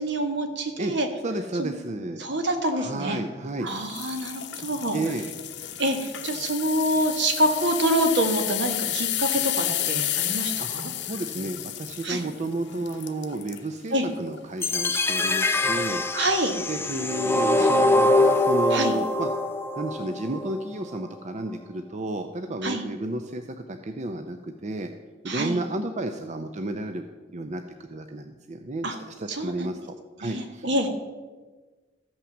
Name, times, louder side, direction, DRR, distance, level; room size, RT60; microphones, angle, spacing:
voice 1, 0.0-1.1 1.6-1.7 2.2-3.2 3.6-5.0 5.8-10.9 12.0-12.2 13.9-14.0 16.1-16.6 18.7-18.9 22.6-22.9 25.2-25.6 28.8-29.0 29.3-29.7 30.2-30.9, right 1 dB, 70° right, 5 dB, 1.6 m, -26 dB
voice 2, 1.2-2.3 2.7-3.7 4.9-5.3 10.6-10.7 11.0-16.1 16.7-19.3 19.8-24.9 25.2-27.0 27.3-27.6 27.9-30.7, right 2 dB, 40° right, 7 dB, 0.6 m, -32 dB
sound 1, 3.8-13.7 14.2-14.4 14.9-15.0, left 12 dB, 65° left, 0.9 m, -31 dB
sound 2, 14.6-20.6, left 2 dB, 15° left, 0.5 m, -23 dB
14.0 x 5.8 x 7.3 m, 1.3 s
head